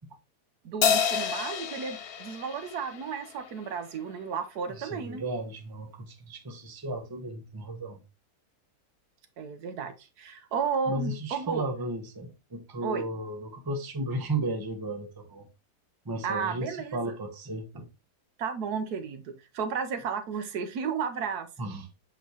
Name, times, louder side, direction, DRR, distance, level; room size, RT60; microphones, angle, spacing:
voice 1, 0.6-5.2 9.4-11.6 12.8-13.0 16.2-17.1 18.4-21.5, right 6 dB, 70° right, 1.3 m, -33 dB
Crash cymbal, 0.8-3.5, left 7 dB, 80° left, 0.5 m, -29 dB
voice 2, 4.8-8.0 10.9-15.5 16.0-17.9 21.6-21.9, right 2 dB, 15° right, 0.8 m, -34 dB
8.1 x 4.0 x 2.9 m
omnidirectional pair, 1.8 m